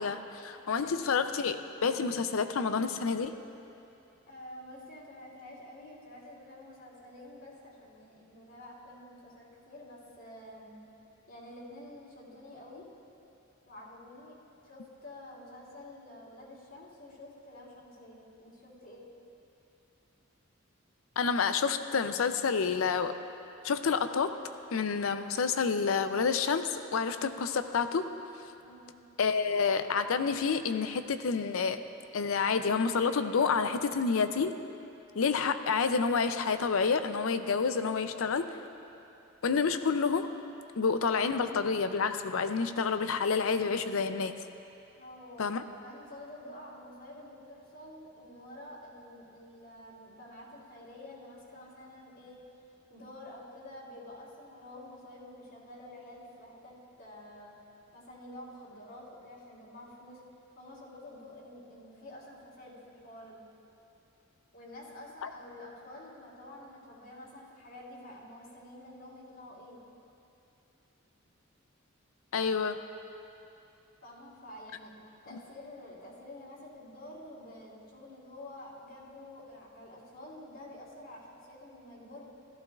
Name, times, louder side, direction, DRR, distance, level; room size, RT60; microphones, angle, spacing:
voice 1, 0.0-3.4 21.2-23.1 23.6-24.4 24.7-28.0 29.2-31.8 32.1-34.6 35.1-38.6 39.4-40.3 40.8-44.4 45.4-45.6 65.2-65.3 72.3-72.8 75.3-75.4, left 5 dB, 85° left, 10 dB, 0.5 m, -29 dB
voice 2, 4.3-10.8 11.3-12.9 13.7-14.4 14.6-19.1 28.6-28.9 45.0-52.4 52.9-57.5 57.9-60.2 60.6-63.5 64.5-69.8 74.0-82.3, left 1 dB, 65° left, -6 dB, 3.1 m, -49 dB
16.5 x 14.0 x 2.4 m, 2.7 s
head